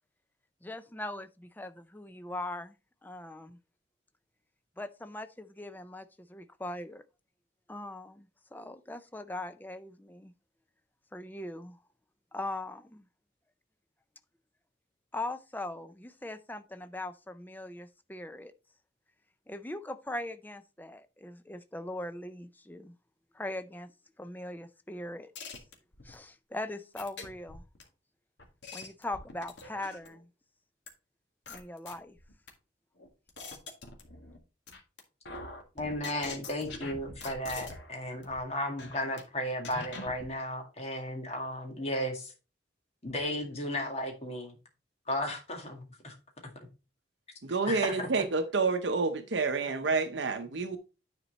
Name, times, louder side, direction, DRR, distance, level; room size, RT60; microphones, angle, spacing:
voice 1, 0.6-2.8 3.0-3.6 4.8-7.0 7.7-10.3 11.1-11.8 12.3-13.0 15.1-18.5 19.5-22.9 23.3-23.9 24.2-25.3 26.0-27.6 28.7-30.3 31.5-32.2, left 1 dB, 10° left, 0.4 m, -40 dB
sound 1, 25.4-26.1 27.0-27.8 28.4-30.2 30.9-31.0 31.5-32.5 33.0-34.4 34.7-35.0 35.3-37.9 38.2-38.4 38.8-39.2 39.6-40.3, left 3 dB, 70° left, 1.7 m, -44 dB
voice 2, 35.8-42.3 43.0-44.6 45.1-46.1 47.7-48.2, left 1 dB, 35° left, 2.1 m, -34 dB
voice 3, 47.4-50.8, right 4 dB, 70° right, 0.7 m, -29 dB
9.8 x 4.4 x 4.1 m
head